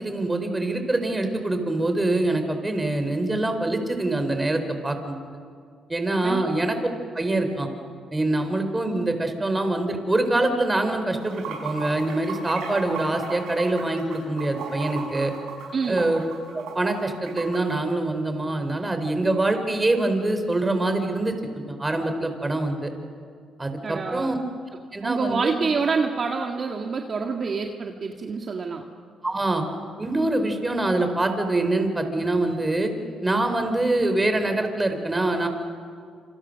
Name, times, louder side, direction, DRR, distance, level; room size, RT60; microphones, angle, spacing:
voice 1, 0.0-5.2 5.9-6.8 7.1-7.7 8.1-15.3 15.9-16.2 16.5-22.9 23.6-24.4 24.9-25.5 29.2-29.7 30.0-32.9 33.2-35.5, right 2 dB, 15° right, 7 dB, 3.8 m, -24 dB
Water / Sink (filling or washing), 11.1-17.6, right 5 dB, 90° right, 6.6 m, -35 dB
voice 2, 15.7-16.1 23.8-24.4 25.0-28.8, right 4 dB, 45° right, 2 dB, 1.9 m, -27 dB
27.5 x 27.5 x 6.5 m, 2.2 s
cardioid pair, 90°, 0 cm